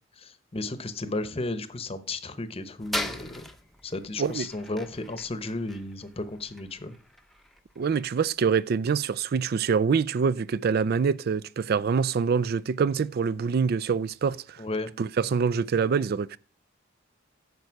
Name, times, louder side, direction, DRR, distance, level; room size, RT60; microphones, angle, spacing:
voice 1, 0.2-3.4 3.8-7.0 14.6-14.9, left 2 dB, 30° left, 0.8 m, -34 dB
sound 1, 2.8-9.5, left 1 dB, ahead, 0.7 m, -40 dB
voice 2, 7.8-14.6 15.0-16.4, right 6 dB, 50° right, 0.4 m, -25 dB
9.4 x 6.6 x 4.7 m
head